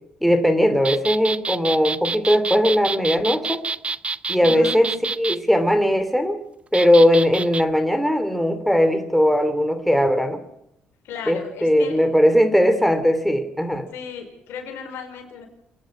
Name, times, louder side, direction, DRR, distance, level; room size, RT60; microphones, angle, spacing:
voice 1, 0.2-3.6 4.3-4.9 5.2-6.4 6.7-10.4 11.3-13.9, equal, ahead, 8 dB, 3.0 m, -19 dB
sound 1, 0.8-5.4 6.7-7.6, right 4 dB, 30° right, 0.7 m, -27 dB
voice 2, 4.4-4.8 11.0-12.0 13.9-15.5, left 6 dB, 80° left, 4 dB, 4.9 m, -35 dB
28.0 x 10.5 x 9.7 m, 0.80 s
supercardioid pair, 70°, 4 cm